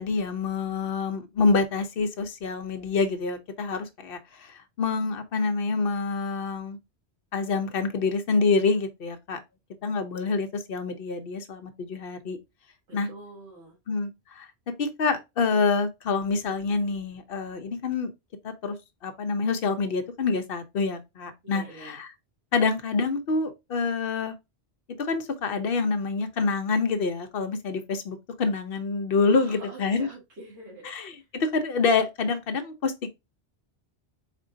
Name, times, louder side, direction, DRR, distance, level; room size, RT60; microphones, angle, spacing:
voice 1, 0.0-6.8 7.3-9.4 9.8-12.4 12.9-13.1 13.9-14.5 14.8-18.1 18.4-18.8 19.0-22.1 22.5-24.3 25.0-30.1 30.8-33.1, left 4 dB, 60° left, 0.9 m, -27 dB
voice 2, 12.9-13.8 21.4-22.0 29.3-31.2, right 2 dB, 85° right, 1.9 m, -45 dB
4.2 x 3.7 x 2.6 m
omnidirectional pair, 1.1 m